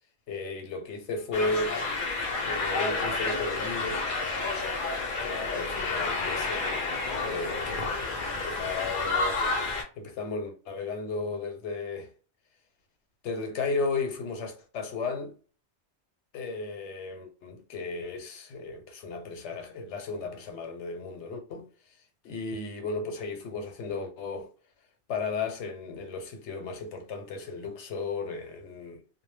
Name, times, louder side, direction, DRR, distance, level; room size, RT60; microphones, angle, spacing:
voice 1, 0.3-1.8 2.4-4.0 5.2-6.7 7.2-12.1 13.2-15.3 16.3-21.7 22.2-24.5 25.1-29.2, left 3 dB, 75° left, 0.9 m, -34 dB
sound 1, 1.3-9.8, left 3 dB, 55° left, 0.7 m, -30 dB
2.1 x 2.1 x 3.2 m
omnidirectional pair, 1.2 m